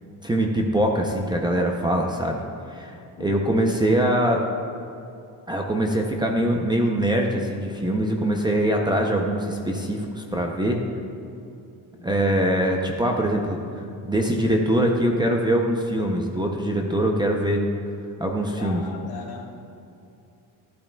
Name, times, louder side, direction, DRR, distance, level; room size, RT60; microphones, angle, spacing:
voice 1, 0.2-2.4 2.7-2.9 3.2-4.4 5.5-10.8 12.0-13.6 14.0-17.7 18.2-18.8, right 1 dB, 10° right, 1 dB, 0.5 m, -23 dB
voice 2, 18.6-19.5, left 5 dB, 65° left, -1 dB, 1.6 m, -37 dB
13.5 x 8.8 x 2.2 m, 2.7 s
cardioid pair, 155°, 39 cm